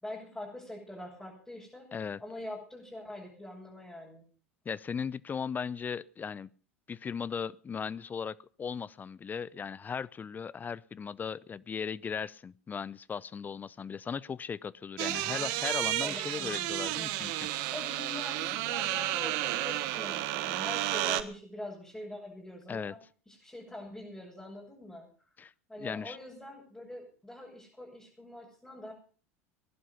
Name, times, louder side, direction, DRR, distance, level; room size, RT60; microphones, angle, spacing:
voice 1, 0.0-1.9 2.2-4.3 16.0-16.8 17.7-23.0 23.3-25.1 25.7-28.9, left 1 dB, 5° left, -5 dB, 7.5 m, -44 dB
voice 2, 1.9-2.2 4.6-6.5 6.9-17.5 22.7-22.9 25.4-25.5 25.8-26.2, left 6 dB, 25° left, 21 dB, 0.7 m, -37 dB
sound 1, 15.0-21.2, right 15 dB, 55° right, 1.3 m, -32 dB
19.5 x 11.5 x 5.7 m, 0.41 s
figure-of-eight pair, 80°, 7 cm